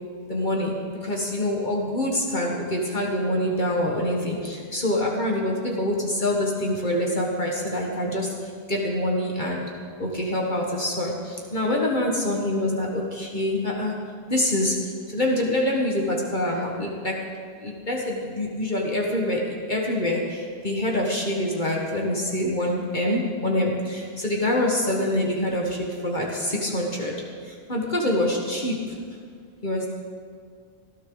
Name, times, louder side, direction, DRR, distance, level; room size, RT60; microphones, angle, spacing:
voice 1, 0.3-0.8 1.0-8.3 8.7-9.6 10.0-11.1 11.5-13.9 14.3-14.7 15.1-17.1 17.6-19.4 19.7-27.1 27.7-28.8 29.6-29.9, left 1 dB, 45° left, -2 dB, 1.8 m, -25 dB
19.5 x 13.5 x 4.0 m, 2.1 s
omnidirectional pair, 1.2 m